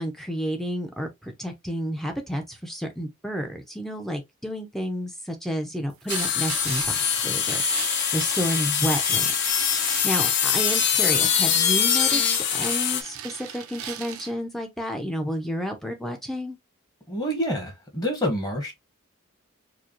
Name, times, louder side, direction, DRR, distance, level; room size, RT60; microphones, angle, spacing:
voice 1, 0.0-9.3 9.7-12.3 12.5-16.6, equal, ahead, 0.7 m, -31 dB
sound 1, 6.1-13.0, left 8 dB, 55° left, 0.7 m, -23 dB
sound 2, 6.1-14.3, right 9 dB, 90° right, 0.6 m, -38 dB
voice 2, 17.1-18.7, equal, 20° left, 1.3 m, -27 dB
4.8 x 2.2 x 3.0 m
head